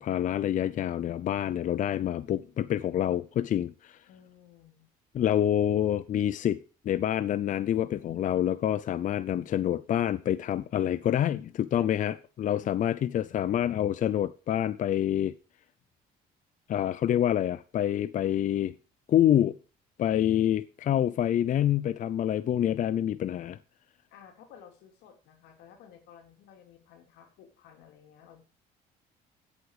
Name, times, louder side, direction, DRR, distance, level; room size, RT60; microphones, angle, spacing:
voice 1, 0.0-4.0 5.1-6.6 6.8-15.3 16.7-18.7 19.1-19.6 20.0-23.6, left 11 dB, 50° left, 0.6 m, -27 dB
voice 2, 4.1-4.9 12.5-13.4 24.1-28.4, left 8 dB, 90° left, 3.5 m, -54 dB
14.5 x 8.3 x 5.0 m
cardioid pair, 110°, 17 cm